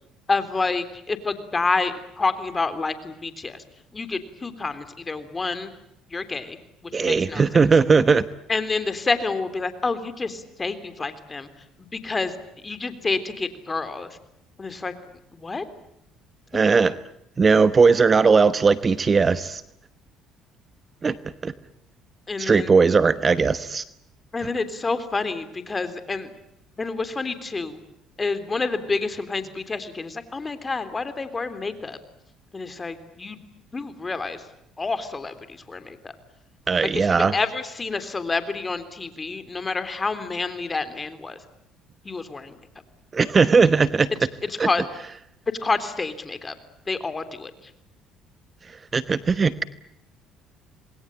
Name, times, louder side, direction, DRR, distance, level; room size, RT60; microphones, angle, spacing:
voice 1, 0.3-3.6 3.9-5.7 6.1-6.6 7.0-7.6 8.5-11.5 11.9-12.3 12.6-14.1 14.6-14.9 15.3-15.6 22.3-22.7 24.3-26.3 26.8-27.8 28.2-32.0 32.5-33.4 33.7-34.4 34.8-36.1 36.9-37.1 37.3-41.4 42.1-42.5 44.6-44.9 45.6-46.5 46.9-47.5, left 3 dB, 25° left, 11 dB, 3.5 m, -28 dB
voice 2, 6.9-8.2 16.5-17.0 17.4-19.6 21.0-21.5 22.4-23.8 36.7-37.4 43.1-44.1 44.6-44.7 48.9-49.6, right 5 dB, 30° right, 14 dB, 1.1 m, -18 dB
27.5 x 21.0 x 9.0 m, 0.80 s
supercardioid pair, 90°, 0 cm